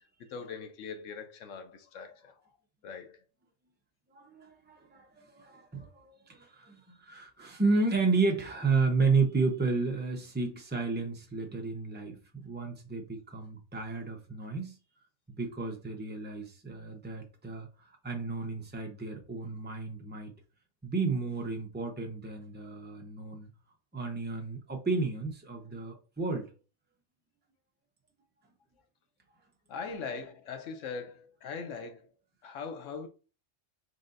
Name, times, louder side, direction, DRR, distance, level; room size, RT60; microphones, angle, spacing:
voice 1, 0.2-2.4 2.8-3.2 29.7-32.1 32.4-33.1, left 5 dB, 75° left, 1.0 m, -41 dB
voice 2, 4.1-14.8 15.3-20.3 20.8-23.5 23.9-26.5, right 4 dB, 15° right, 0.4 m, -32 dB
3.9 x 3.3 x 2.5 m
omnidirectional pair, 1.3 m